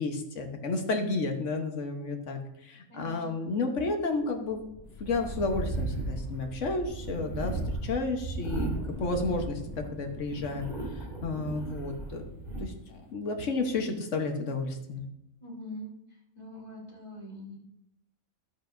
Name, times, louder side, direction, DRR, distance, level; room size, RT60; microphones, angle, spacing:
voice 1, 0.0-4.6 5.0-8.7 9.0-12.2 12.6-15.0, left 3 dB, 55° left, 4 dB, 1.3 m, -32 dB
voice 2, 2.9-3.5 15.4-15.9 16.3-17.6, left 1 dB, 20° left, -6 dB, 3.4 m, -43 dB
sound 1, 4.2-12.6, left 1 dB, ahead, 3.4 m, -46 dB
sound 2, 5.1-9.9 10.2-12.6, right 2 dB, 35° right, 3.9 m, -36 dB
12.0 x 7.9 x 2.6 m, 0.82 s
omnidirectional pair, 1.5 m